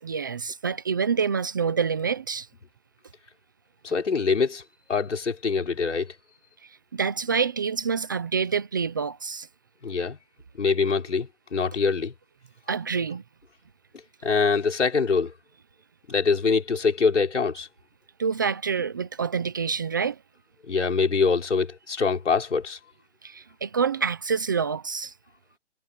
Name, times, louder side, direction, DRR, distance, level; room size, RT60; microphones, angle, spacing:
voice 1, 0.0-2.5 6.9-9.5 12.7-13.2 18.2-20.2 23.2-25.1, right 6 dB, 15° right, 1.0 m, -27 dB
voice 2, 3.8-4.6 4.9-6.1 9.8-10.2 10.6-12.1 14.2-15.3 16.1-17.7 20.7-22.8, left 5 dB, 70° left, 5.3 m, -24 dB
hypercardioid pair, 170°, 37 cm